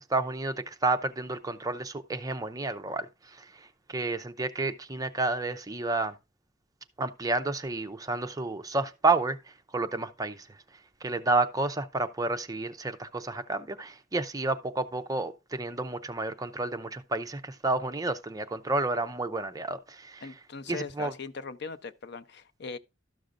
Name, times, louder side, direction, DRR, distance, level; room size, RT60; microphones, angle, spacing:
voice 1, 0.1-6.1 7.0-10.6 11.0-20.2 20.7-21.1, right 3 dB, 20° right, 0.6 m, -30 dB
voice 2, 20.2-22.8, left 4 dB, 60° left, 0.6 m, -40 dB
13.0 x 6.3 x 2.5 m
head